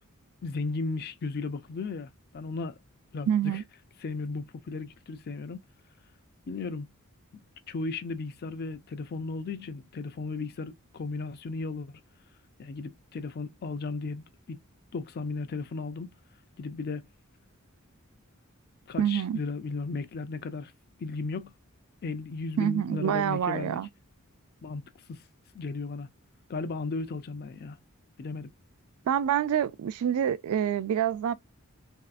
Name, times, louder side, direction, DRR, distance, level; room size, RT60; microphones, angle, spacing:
voice 1, 0.4-2.8 3.1-3.6 4.0-5.6 6.5-6.9 7.7-12.0 12.6-14.6 14.9-16.1 16.6-17.0 18.9-20.7 21.0-21.5 22.0-23.8 24.6-24.8 25.1-25.2 25.5-26.1 26.5-27.8 28.2-28.5, left 3 dB, 45° left, 0.4 m, -35 dB
voice 2, 3.3-3.6 19.0-19.4 22.6-23.9 29.1-31.3, right 9 dB, 75° right, 0.3 m, -27 dB
3.2 x 2.6 x 2.3 m
head